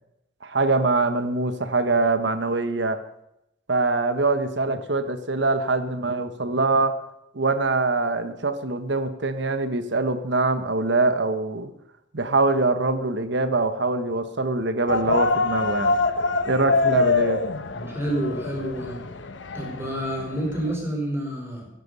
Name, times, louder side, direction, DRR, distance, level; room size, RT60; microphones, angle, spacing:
voice 1, 0.4-3.0 3.7-7.0 7.3-11.7 12.1-16.0 16.5-17.4, right 3 dB, 70° right, 10 dB, 1.2 m, -23 dB
sound 1, 14.9-20.8, left 4 dB, 75° left, 1.1 m, -25 dB
voice 2, 17.7-19.0 19.5-21.7, right 1 dB, 15° right, -1 dB, 4.9 m, -28 dB
16.0 x 11.0 x 6.8 m, 0.84 s
head